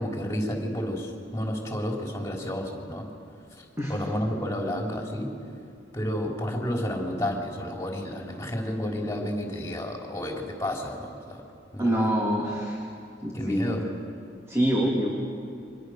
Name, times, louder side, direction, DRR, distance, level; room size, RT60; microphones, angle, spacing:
voice 1, 0.0-3.1 3.9-5.3 5.9-11.4 11.7-12.1 13.3-13.9, equal, 15° left, 0 dB, 3.9 m, -31 dB
voice 2, 11.8-12.8 13.2-13.7 14.5-15.1, equal, 15° right, -3 dB, 2.9 m, -25 dB
29.5 x 25.0 x 6.6 m, 2.4 s
head